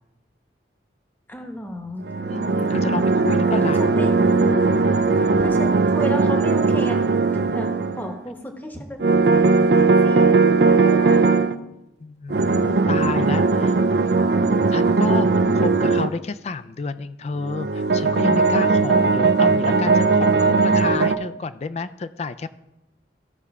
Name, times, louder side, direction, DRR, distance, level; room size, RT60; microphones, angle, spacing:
voice 1, 1.3-2.1 3.5-4.2 5.1-7.0 7.3-7.7 8.0-9.0 9.6-11.4, equal, 10° left, 4 dB, 0.9 m, -32 dB
sound 1, 2.0-8.2 9.0-11.5 12.3-16.1 17.4-21.2, right 4 dB, 65° right, 0.5 m, -18 dB
voice 2, 2.3-3.8 12.0-13.8 14.7-22.5, left 3 dB, 35° left, 13 dB, 0.3 m, -30 dB
14.5 x 5.6 x 3.6 m, 0.91 s
head